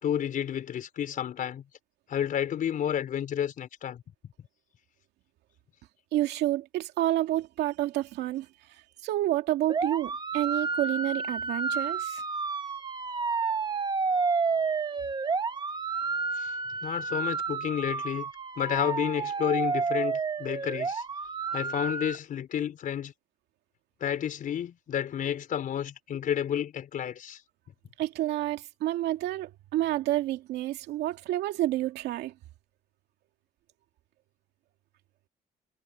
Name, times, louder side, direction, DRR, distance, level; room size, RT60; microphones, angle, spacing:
voice 1, 0.0-1.6 2.1-4.0 16.3-16.5 16.8-18.3 18.6-21.0 21.5-23.1 24.0-27.4, left 9 dB, 55° left, 4.5 m, -31 dB
voice 2, 6.1-8.5 9.0-12.2 28.0-32.3, right 14 dB, 80° right, 2.4 m, -29 dB
sound 1, 9.7-22.2, right 4 dB, 25° right, 1.7 m, -30 dB
cardioid pair, 110°, 17 cm